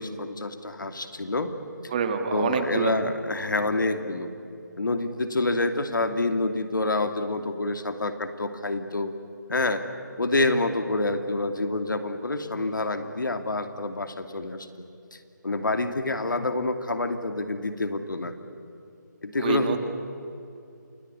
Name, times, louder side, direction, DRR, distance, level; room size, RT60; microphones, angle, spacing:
voice 1, 0.0-1.5 2.3-4.3 4.8-9.1 9.5-9.8 10.2-14.7 15.4-18.3 19.2-19.8, left 2 dB, 80° left, 8 dB, 2.6 m, -27 dB
voice 2, 1.9-2.9 19.4-19.8, right 6 dB, 25° right, 7 dB, 1.8 m, -26 dB
28.5 x 19.0 x 9.8 m, 2.6 s
figure-of-eight pair, 165°, 11 cm